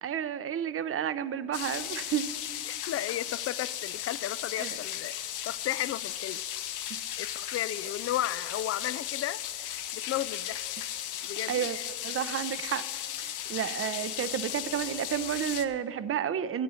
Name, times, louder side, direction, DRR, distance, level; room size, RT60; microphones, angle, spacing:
voice 1, 0.0-2.3 4.6-4.8 6.9-7.0 11.5-11.8 12.0-12.8 13.2-16.6, right 9 dB, 45° right, 15 dB, 0.6 m, -31 dB
sound 1, 1.5-15.7, left 11 dB, 85° left, 0.8 m, -36 dB
voice 2, 2.7-5.1 5.5-6.4 7.2-10.6 11.2-11.9 13.6-13.8, left 13 dB, 50° left, 18 dB, 0.4 m, -34 dB
13.5 x 8.6 x 5.6 m, 2.3 s
cardioid pair, 90°, 30 cm